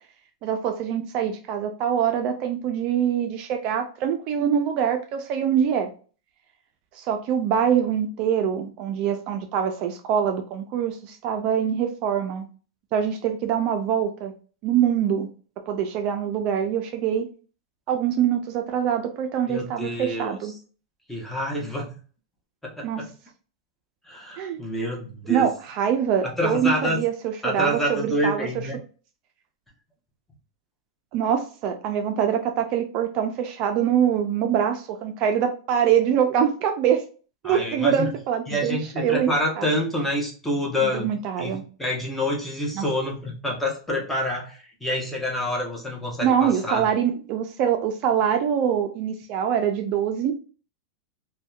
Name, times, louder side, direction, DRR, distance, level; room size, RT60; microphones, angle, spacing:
voice 1, 0.4-5.9 6.9-12.4 12.9-14.3 14.6-15.3 15.7-17.3 17.9-20.5 22.8-23.1 24.4-24.6 25.3-28.5 31.1-37.0 37.4-39.7 40.8-41.6 42.7-42.8 46.2-50.3, right 8 dB, 45° right, 5 dB, 0.3 m, -24 dB
voice 2, 19.5-20.4 21.1-21.9 22.6-23.1 24.1-25.5 26.2-27.0 27.4-28.8 37.4-38.1 38.5-41.1 41.4-46.8, equal, 5° left, -2 dB, 0.7 m, -27 dB
2.7 x 2.1 x 2.3 m, 0.39 s
hypercardioid pair, 125°, 2 cm